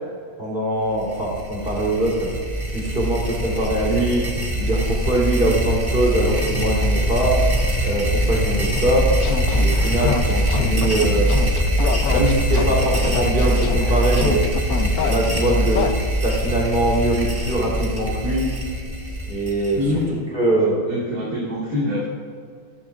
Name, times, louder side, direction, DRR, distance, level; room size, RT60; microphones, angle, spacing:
voice 1, 0.4-2.3 2.7-7.4 7.8-9.1 9.5-11.3 12.1-14.4 15.1-15.9 16.2-18.4 19.3-19.8 20.3-20.8, right 1 dB, 35° right, -5 dB, 3.6 m, -22 dB
sound 1, 1.0-20.1, equal, 15° right, 1.4 m, -22 dB
sound 2, 8.7-15.9, left 7 dB, 75° left, 1.2 m, -27 dB
voice 2, 19.7-20.1 20.6-22.1, left 1 dB, 70° right, -7 dB, 2.5 m, -25 dB
14.5 x 13.5 x 2.5 m, 2.2 s
omnidirectional pair, 1.6 m